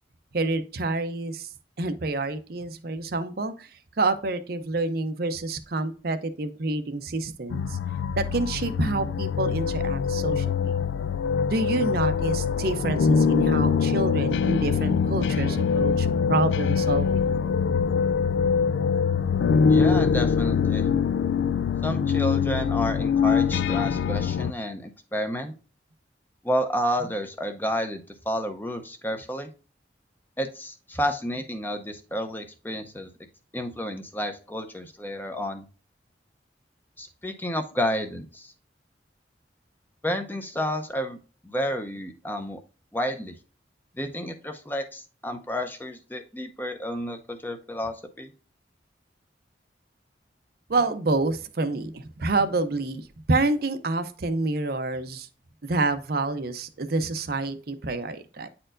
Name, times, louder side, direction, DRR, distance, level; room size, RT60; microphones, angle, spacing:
voice 1, 0.3-1.5 1.8-3.7 4.0-7.8 8.1-10.7 11.5-17.3 50.7-55.3 55.6-58.5, right 2 dB, 60° right, 9 dB, 0.6 m, -28 dB
sound 1, 7.5-24.5, left 6 dB, 85° left, 0.3 m, -23 dB
voice 2, 19.7-20.9 21.8-25.5 26.4-29.5 30.4-33.1 33.5-35.6 37.0-38.5 40.0-41.2 41.4-42.6 42.9-43.3 43.9-48.3, equal, 10° left, 6 dB, 0.7 m, -30 dB
8.9 x 4.4 x 2.5 m, 0.36 s
head